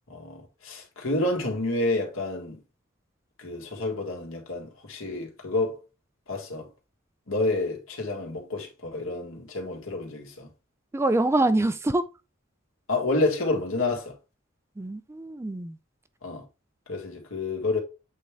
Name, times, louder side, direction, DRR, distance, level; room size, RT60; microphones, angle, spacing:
voice 1, 0.1-2.6 3.4-5.8 6.3-6.7 7.3-10.5 12.9-14.2 16.2-16.5 16.9-17.8, left 2 dB, 70° left, 1.9 m, -29 dB
voice 2, 10.9-12.1 14.8-15.8, right 2 dB, 15° right, 0.3 m, -25 dB
8.2 x 3.6 x 3.4 m
head